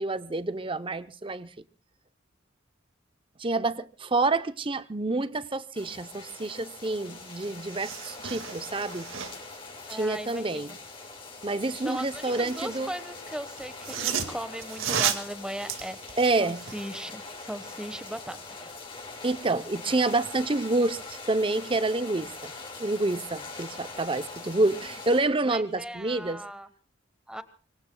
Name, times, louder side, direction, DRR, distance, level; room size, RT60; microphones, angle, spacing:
voice 1, 0.0-1.5 3.4-9.1 9.9-10.8 11.4-12.9 16.2-16.7 19.2-22.5 22.8-26.4, right 2 dB, 25° right, 0.7 m, -28 dB
sound 1, 5.7-25.2, left 3 dB, 25° left, 6.8 m, -43 dB
Subirse a una silla, 7.0-7.1 7.3-9.6 11.7-12.8 13.6-16.9 17.3-17.4, right 8 dB, 90° right, 2.0 m, -34 dB
voice 2, 9.9-10.8 11.8-18.7 25.4-26.7 27.3-27.4, equal, 5° right, 1.2 m, -38 dB
25.0 x 24.5 x 2.3 m
head